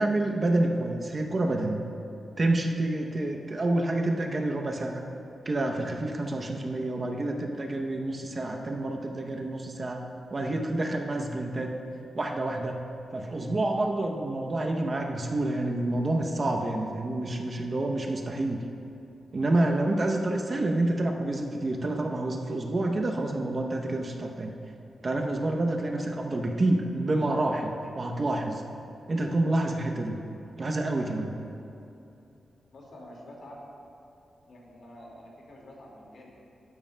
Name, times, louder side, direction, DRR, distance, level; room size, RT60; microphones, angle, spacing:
voice 1, 0.0-1.8 2.4-5.0 5.5-10.0 10.3-11.7 12.1-12.8 13.1-18.6 19.3-24.5 25.0-28.6 29.1-30.2 30.6-31.3, right 2 dB, 35° right, 2 dB, 0.7 m, -28 dB
voice 2, 32.7-33.6 34.5-36.3, left 1 dB, 65° left, -3 dB, 2.0 m, -47 dB
12.0 x 11.0 x 2.2 m, 2.7 s
wide cardioid pair, 130°, 0 cm